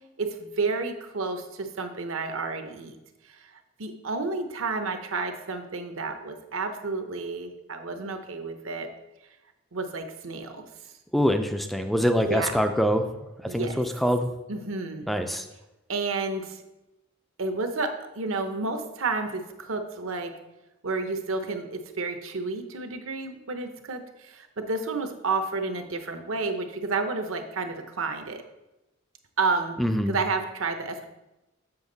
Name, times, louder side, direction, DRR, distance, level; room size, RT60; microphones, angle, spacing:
voice 1, 0.2-3.0 3.3-3.5 3.8-8.9 9.7-10.7 12.2-12.5 13.5-13.8 14.5-15.1 15.9-16.6 17.4-20.3 20.8-28.4 29.4-29.8 30.1-31.1, right 3 dB, 70° right, 7 dB, 0.8 m, -31 dB
voice 2, 11.1-13.0 13.4-14.3 15.1-15.4 29.8-30.1, equal, ahead, 6 dB, 0.3 m, -24 dB
7.1 x 6.1 x 3.9 m, 0.97 s
head